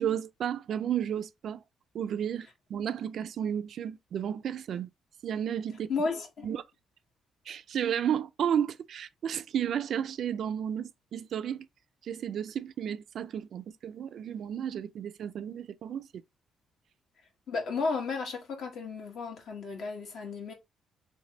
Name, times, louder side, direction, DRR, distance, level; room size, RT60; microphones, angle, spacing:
voice 1, 0.0-1.6 1.9-4.9 5.2-5.9 6.4-6.6 7.5-11.7 12.0-16.1, right 9 dB, 65° right, 0.3 m, -32 dB
voice 2, 5.9-6.5 17.5-20.5, left 4 dB, 70° left, 1.3 m, -33 dB
3.3 x 3.2 x 2.8 m
cardioid pair, 90°, 0 cm